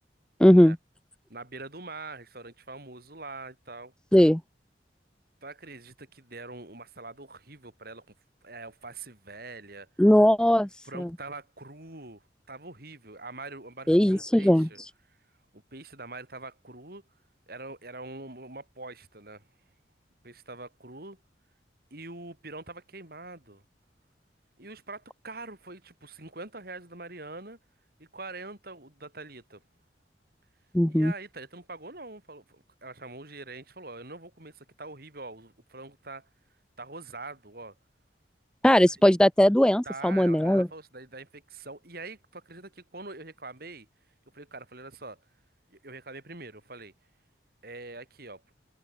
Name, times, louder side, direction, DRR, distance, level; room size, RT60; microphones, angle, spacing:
voice 1, 0.4-0.8 4.1-4.4 10.0-10.7 11.0-11.1 13.9-14.7 30.7-31.1 38.6-40.7, equal, 5° left, 0.4 m, -19 dB
voice 2, 1.3-3.9 5.4-8.1 8.4-9.9 10.8-14.8 15.5-17.0 17.5-19.5 20.2-21.2 21.9-23.6 24.6-27.6 28.0-29.6 30.9-36.3 36.8-37.7 39.8-43.9 44.3-45.2 45.7-46.9 47.6-48.4, right 3 dB, 55° right, 5.1 m, -43 dB
head